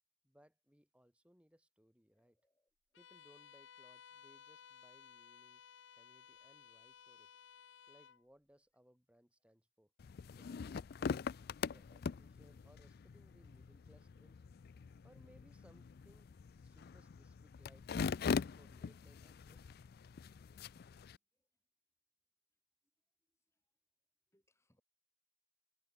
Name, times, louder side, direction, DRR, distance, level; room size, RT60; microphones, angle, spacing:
voice 1, 0.2-2.4 3.0-5.6 6.0-7.3 7.9-9.9 10.4-11.3 11.7-14.4 15.0-16.3 16.6-19.8, equal, 5° right, 2.7 m, -67 dB
voice 2, 2.1-2.7 21.3-21.5 23.3-23.6 24.3-24.8, left 1 dB, 15° left, 7.9 m, -83 dB
Bowed string instrument, 2.9-8.2, left 8 dB, 75° left, 0.7 m, -59 dB
sound 1, 10.0-21.2, left 5 dB, 55° left, 0.4 m, -42 dB
head